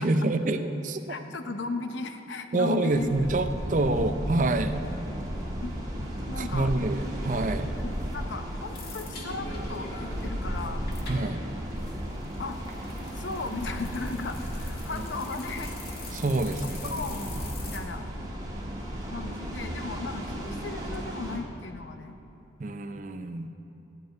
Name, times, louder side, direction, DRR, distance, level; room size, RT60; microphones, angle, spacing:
voice 1, 0.0-1.0 2.5-4.8 6.4-7.7 11.1-11.4 14.9-15.0 16.1-17.0 22.6-23.5, right 2 dB, 40° right, 9 dB, 0.5 m, -27 dB
voice 2, 1.1-3.3 4.0-4.1 5.6-5.7 6.3-6.7 7.8-10.8 12.4-12.6 13.1-15.7 16.6-18.1 19.0-22.2, left 3 dB, 75° left, 7 dB, 0.8 m, -36 dB
sound 1, 2.9-21.4, equal, 20° right, 1.6 m, -35 dB
sound 2, 7.3-17.8, left 2 dB, 50° left, 1.7 m, -45 dB
14.5 x 5.3 x 9.1 m, 2.8 s
head